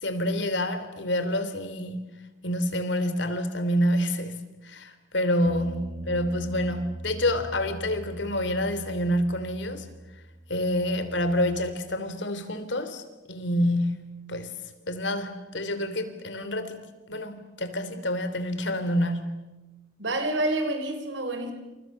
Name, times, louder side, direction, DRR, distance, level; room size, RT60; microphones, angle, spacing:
voice 1, 0.0-2.1 2.4-9.8 10.5-13.0 13.3-14.5 14.9-16.8 17.1-19.4, left 1 dB, 75° left, 3.2 m, -28 dB
sound 1, 5.5-11.7, right 1 dB, 30° right, 3.9 m, -41 dB
voice 2, 20.0-21.5, right 1 dB, 80° right, 4.3 m, -28 dB
29.0 x 28.0 x 6.6 m
head